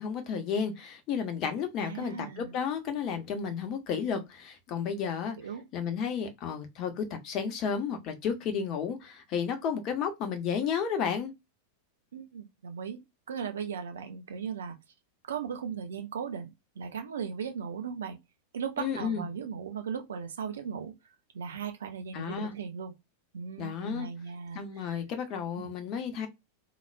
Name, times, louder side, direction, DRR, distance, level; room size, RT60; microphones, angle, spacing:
voice 1, 0.0-5.4 5.7-11.3 18.8-19.3 22.1-22.5 23.6-24.1 24.5-26.3, left 7 dB, 40° left, 1.0 m, -32 dB
voice 2, 1.8-2.5 5.4-5.7 12.1-14.8 15.3-18.2 18.5-20.9 21.3-22.9 23.3-24.9 25.6-25.7, right 6 dB, 65° right, 0.7 m, -37 dB
3.9 x 2.9 x 2.2 m
figure-of-eight pair, 90°, 0 cm